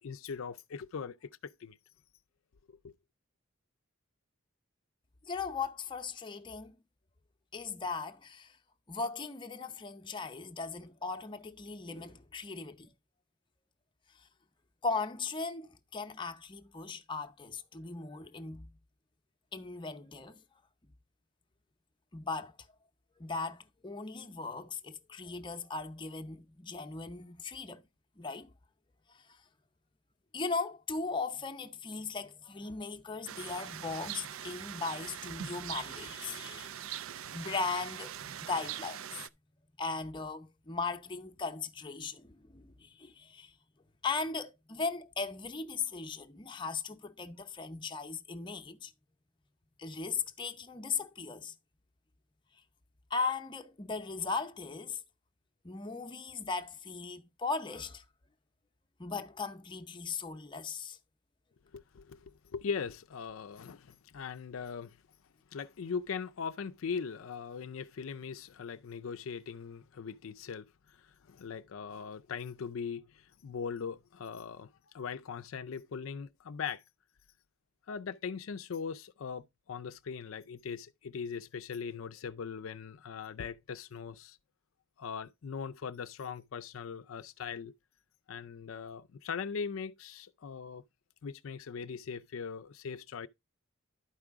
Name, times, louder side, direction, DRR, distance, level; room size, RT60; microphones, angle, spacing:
voice 1, 0.0-1.8 2.7-2.9 61.7-65.0 65.5-76.8 77.9-84.4 85.0-87.7 88.3-90.8 91.2-93.3, left 6 dB, 70° left, 0.4 m, -40 dB
voice 2, 5.2-6.8 7.5-8.6 8.9-12.9 14.8-18.7 19.5-20.4 22.1-22.5 23.2-27.8 28.2-28.5 29.1-29.4 30.3-37.0 37.3-39.1 39.8-43.5 44.0-48.9 49.8-51.5 53.1-55.0 55.6-58.0 59.0-61.0, left 4 dB, 20° left, 0.7 m, -38 dB
sound 1, 33.3-39.3, right 10 dB, 75° right, 0.4 m, -42 dB
11.5 x 4.9 x 3.5 m
head